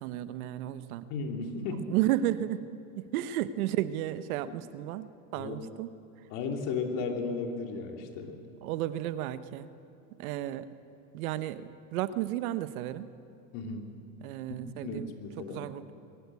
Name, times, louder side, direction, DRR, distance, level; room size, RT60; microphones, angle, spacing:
voice 1, 0.0-1.1 1.9-2.6 3.0-5.9 8.6-9.7 10.2-10.7 11.1-13.1 14.2-15.1 15.5-15.9, right 13 dB, 85° right, 13 dB, 1.0 m, -33 dB
voice 2, 1.1-1.9 5.4-5.6 6.3-8.4 13.5-13.9 14.6-15.6, left 4 dB, 70° left, 3 dB, 2.9 m, -35 dB
22.0 x 15.0 x 8.4 m, 2.6 s
supercardioid pair, 125°, 42 cm